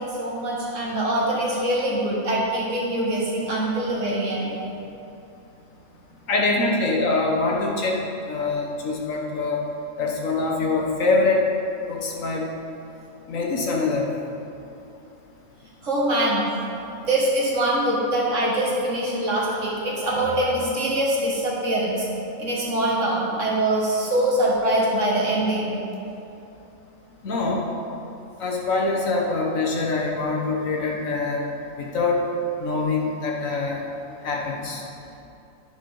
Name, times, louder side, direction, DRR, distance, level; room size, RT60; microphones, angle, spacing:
voice 1, 0.0-4.5 15.8-16.5 17.0-22.1 22.4-25.7, right 1 dB, 60° right, -5 dB, 2.0 m, -23 dB
voice 2, 6.3-8.0 8.3-9.6 10.0-11.4 11.9-12.5 13.3-14.1 27.2-27.6 28.4-31.4 31.8-32.2 32.6-33.8 34.2-34.8, left 3 dB, 75° left, -1 dB, 1.6 m, -24 dB
10.0 x 5.1 x 5.4 m, 2.8 s
omnidirectional pair, 1.4 m